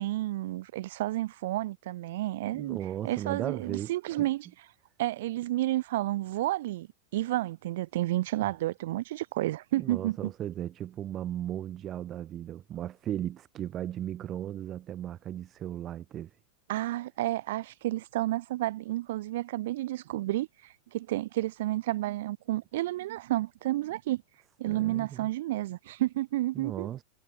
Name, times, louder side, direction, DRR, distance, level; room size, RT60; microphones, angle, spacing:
voice 1, 0.0-2.8 3.0-4.5 5.0-6.9 7.1-10.3 16.7-24.2 24.6-26.9, right 16 dB, 55° right, 1.4 m, -31 dB
voice 2, 2.5-4.3 8.4-8.5 9.7-16.3 24.7-25.3 26.5-27.0, right 11 dB, 30° right, 4.8 m, -36 dB
figure-of-eight pair, 90°, 0 cm